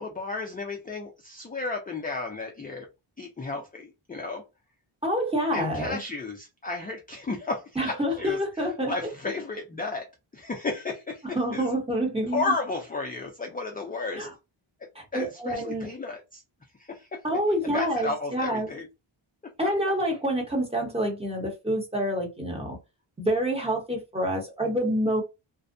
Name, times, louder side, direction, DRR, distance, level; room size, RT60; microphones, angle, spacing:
voice 1, 0.0-2.9 3.2-4.4 5.5-11.7 12.3-14.3 14.8-16.4 16.8-17.2 17.6-18.9, left 3 dB, 20° left, 0.3 m, -33 dB
voice 2, 5.0-6.0 7.8-8.9 11.2-12.4 14.2-14.3 14.9-15.9 17.2-18.7 19.6-22.8 23.2-25.2, equal, 10° right, 0.9 m, -27 dB
2.6 x 2.1 x 2.5 m
wide cardioid pair, 110°, 49 cm